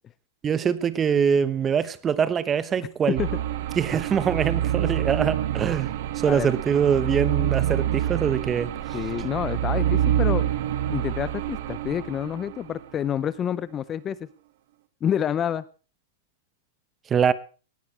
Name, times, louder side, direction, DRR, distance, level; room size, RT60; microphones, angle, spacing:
voice 1, 0.4-3.2 3.8-5.9 6.2-8.7 17.1-17.3, right 7 dB, 20° right, 1.0 m, -23 dB
sound 1, 3.2-12.8, right 11 dB, 60° right, 1.6 m, -27 dB
voice 2, 6.2-6.6 8.9-10.5 10.9-14.3 15.0-15.6, left 9 dB, 25° left, 0.6 m, -28 dB
19.0 x 16.0 x 3.3 m
hypercardioid pair, 140°, 0 cm